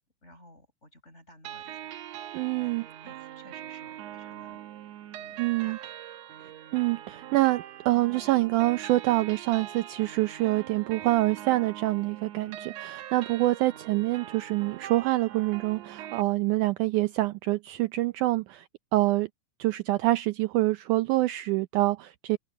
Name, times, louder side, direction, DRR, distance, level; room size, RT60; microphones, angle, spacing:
voice 1, 0.2-2.0 2.6-4.6 5.2-5.9 12.6-12.7, equal, 15° left, 6.9 m, -55 dB
sound 1, 1.4-16.2, right 12 dB, 65° right, 1.7 m, -42 dB
voice 2, 2.3-2.9 5.4-5.8 6.4-19.3 19.6-22.4, right 18 dB, 85° right, 1.8 m, -26 dB
open air
omnidirectional pair, 4.3 m